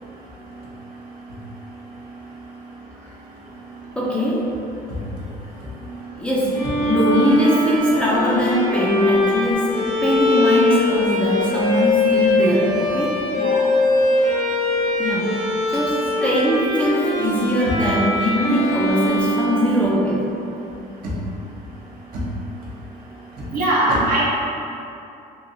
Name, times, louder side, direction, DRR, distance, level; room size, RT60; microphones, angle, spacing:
voice 1, 3.9-4.6 6.2-13.2 15.0-15.4 15.7-20.3, equal, 5° left, -7 dB, 0.4 m, -21 dB
Bowed string instrument, 6.5-20.4, left 2 dB, 80° left, 1.0 m, -21 dB
voice 2, 13.3-13.6 23.5-24.2, right 1 dB, 55° right, -6 dB, 0.7 m, -20 dB
3.0 x 2.6 x 2.6 m, 2.7 s
cardioid pair, 110°, 17 cm